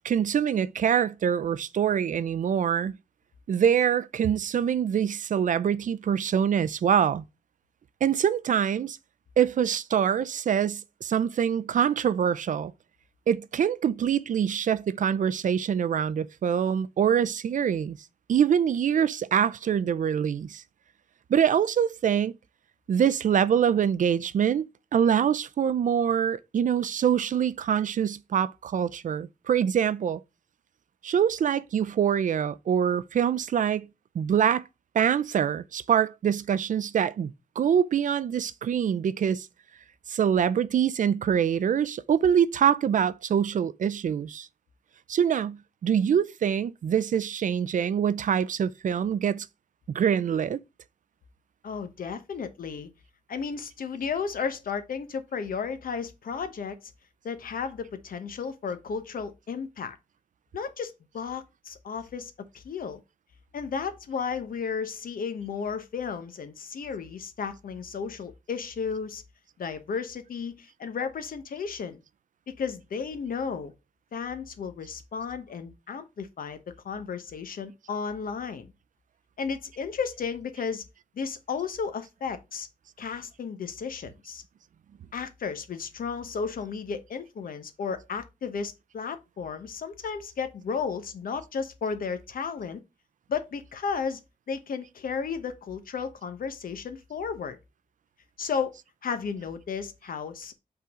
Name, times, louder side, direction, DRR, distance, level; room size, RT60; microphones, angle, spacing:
voice 1, 0.0-3.0 3.5-7.2 8.0-9.0 9.4-12.7 13.3-18.0 18.3-20.6 21.3-22.3 22.9-30.2 31.0-33.9 34.1-34.6 34.9-39.5 40.1-44.5 45.1-49.5 49.9-50.6, right 8 dB, 65° right, 0.4 m, -24 dB
voice 2, 51.6-52.9 53.3-56.9 57.2-60.0 60.5-63.0 63.5-69.2 69.6-72.0 72.5-73.7 74.1-78.7 79.4-80.8 81.1-82.7 83.0-84.4 85.1-92.8 93.3-94.2 94.5-97.6 98.4-98.8 99.0-100.5, left 6 dB, 85° left, 1.1 m, -33 dB
5.6 x 3.8 x 5.9 m
wide cardioid pair, 165°, 14 cm